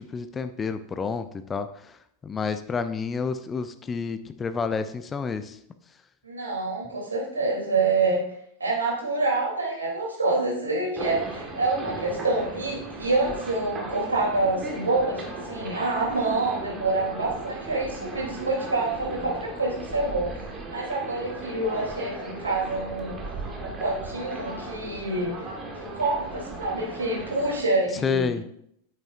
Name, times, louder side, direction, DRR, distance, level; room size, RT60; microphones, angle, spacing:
voice 1, 0.0-5.6 27.9-28.4, left 5 dB, 20° left, 10 dB, 0.5 m, -30 dB
voice 2, 6.2-8.2 8.6-20.3 20.7-23.1 23.6-25.5 25.9-28.3, right 3 dB, 75° right, -2 dB, 3.1 m, -27 dB
sound 1, 11.0-27.6, right 2 dB, 20° right, 1.6 m, -37 dB
9.0 x 9.0 x 2.6 m, 0.73 s
figure-of-eight pair, 90°, 0 cm